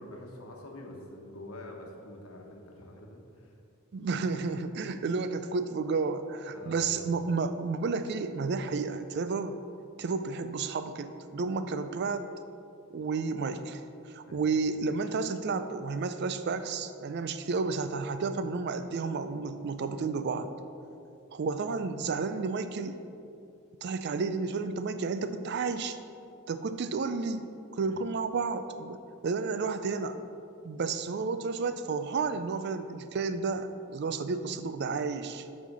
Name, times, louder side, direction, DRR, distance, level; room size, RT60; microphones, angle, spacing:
voice 1, 0.0-3.5 6.5-7.1 14.3-14.5 27.8-28.0, left 1 dB, 80° left, 0 dB, 1.1 m, -46 dB
voice 2, 3.9-9.6 10.0-12.2 12.9-13.8 14.1-20.5 21.3-23.0 23.8-26.0 26.5-29.0 29.2-30.2 30.6-35.5, right 4 dB, 50° right, 10 dB, 0.4 m, -31 dB
7.3 x 4.3 x 5.3 m, 2.5 s
head